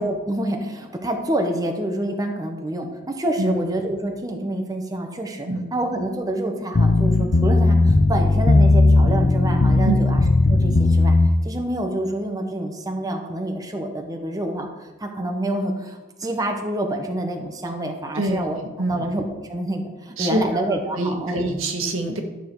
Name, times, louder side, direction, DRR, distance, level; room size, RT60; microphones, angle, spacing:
voice 1, 0.0-10.2 10.5-11.1 11.4-18.6 18.9-21.4, right 1 dB, 20° right, 3 dB, 0.9 m, -27 dB
sound 1, 6.7-11.3, left 2 dB, 50° left, 0.6 m, -16 dB
voice 2, 18.1-19.0 20.2-20.6 21.0-22.2, right 1 dB, 85° right, 3 dB, 1.6 m, -25 dB
12.0 x 7.0 x 4.6 m, 1.1 s
head